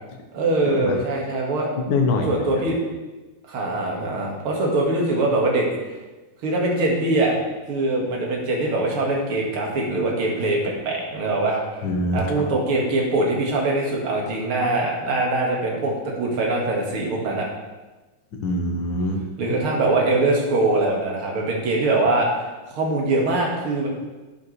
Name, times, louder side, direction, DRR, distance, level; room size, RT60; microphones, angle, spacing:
voice 1, 0.3-1.7 2.3-2.8 3.5-5.7 6.4-7.3 7.7-11.8 12.1-17.5 19.4-22.4 22.7-23.9, right 2 dB, 45° right, -2 dB, 2.3 m, -22 dB
voice 2, 1.9-2.5 11.8-12.5 18.3-19.2, left 2 dB, 90° left, 2 dB, 0.9 m, -24 dB
12.0 x 8.4 x 3.2 m, 1.2 s
omnidirectional pair, 3.7 m